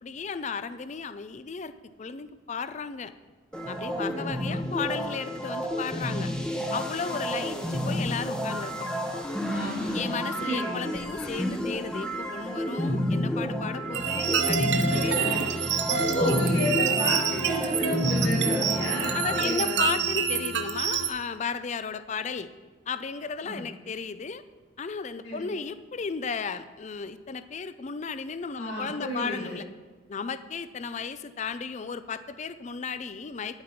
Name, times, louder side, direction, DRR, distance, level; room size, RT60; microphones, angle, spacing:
voice 1, 0.0-1.7 2.0-3.1 3.7-6.3 6.7-8.9 9.9-15.1 15.9-16.4 19.1-22.5 22.9-24.4 24.8-29.7 30.1-33.6, left 5 dB, 35° left, 13 dB, 0.4 m, -34 dB
sound 1, 3.5-19.5, equal, 5° left, 0.9 m, -30 dB
voice 2, 3.9-4.3 7.3-7.6 9.4-11.0 14.7-15.4 15.9-19.8 23.4-23.6 25.2-25.5 28.6-29.5, equal, 65° left, -10 dB, 3.7 m, -32 dB
sound 2, 13.9-21.1, right 7 dB, 60° right, 0.8 m, -28 dB
10.5 x 8.8 x 5.9 m, 1.3 s
head